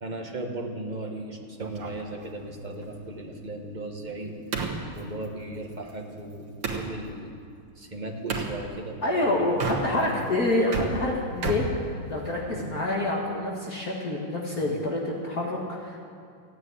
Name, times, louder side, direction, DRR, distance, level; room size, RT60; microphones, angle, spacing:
voice 1, 0.0-4.3 5.0-6.5 6.8-7.3 7.7-9.6 10.0-10.4 12.4-12.7 14.5-14.8, right 2 dB, 25° right, 2 dB, 1.2 m, -37 dB
sound 1, 1.6-6.9 8.3-8.6 9.5-10.2 10.5-12.5, right 4 dB, 80° right, 2.5 m, -34 dB
voice 2, 9.0-16.0, left 1 dB, 45° left, -3 dB, 2.1 m, -27 dB
15.5 x 9.4 x 9.5 m, 2.3 s
omnidirectional pair, 2.4 m